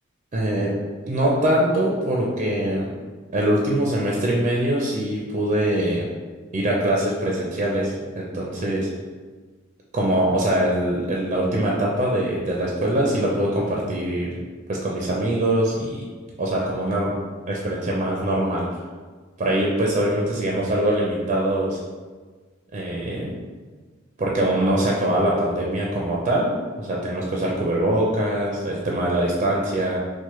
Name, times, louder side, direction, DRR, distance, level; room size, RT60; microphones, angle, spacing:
voice 1, 0.3-0.7 1.0-2.9 3.3-6.1 6.5-8.9 9.9-14.4 14.7-16.0 16.4-17.2 17.5-18.7 19.4-21.8 22.7-23.4 24.2-26.5 26.8-30.0, right 1 dB, 35° right, -2 dB, 0.4 m, -23 dB
4.5 x 2.1 x 3.0 m, 1.4 s
head